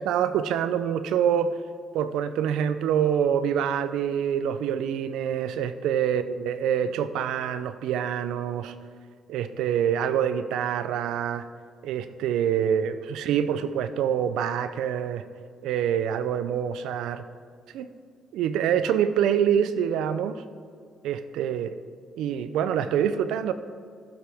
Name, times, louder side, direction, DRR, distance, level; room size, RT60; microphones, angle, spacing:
voice 1, 0.0-1.6 1.9-8.7 9.3-11.4 11.8-15.2 15.6-17.2 17.7-17.9 18.3-20.4 21.0-21.8 22.2-23.5, right 9 dB, 90° right, 12 dB, 0.4 m, -26 dB
15.5 x 7.7 x 3.5 m, 2.1 s
cardioid pair, 90°, 0 cm